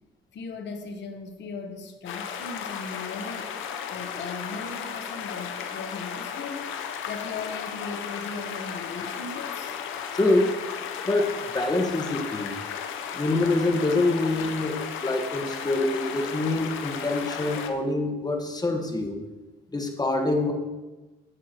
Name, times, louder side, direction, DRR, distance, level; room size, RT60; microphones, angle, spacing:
voice 1, 0.3-3.5 3.9-6.7 7.1-9.7, left 4 dB, 65° left, 6 dB, 1.1 m, -38 dB
sound 1, 2.1-17.7, left 7 dB, 85° left, 0.7 m, -35 dB
voice 2, 10.1-10.5 11.1-12.5 13.1-19.2 19.7-20.5, left 2 dB, 20° left, 3 dB, 1.3 m, -25 dB
11.0 x 7.3 x 2.9 m, 1.2 s
cardioid pair, 90°, 20 cm